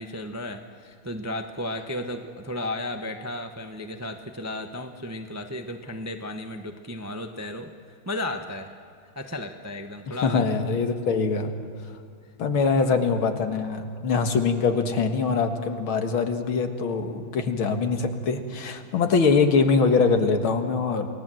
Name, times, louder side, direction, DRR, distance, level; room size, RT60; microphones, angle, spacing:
voice 1, 0.0-7.7 8.1-8.7 9.2-10.5 12.8-12.9, left 1 dB, 15° right, 5 dB, 0.6 m, -34 dB
voice 2, 10.1-11.5 12.4-21.1, left 4 dB, 80° left, 6 dB, 2.4 m, -23 dB
28.5 x 19.0 x 7.7 m, 2.4 s
omnidirectional pair, 2.2 m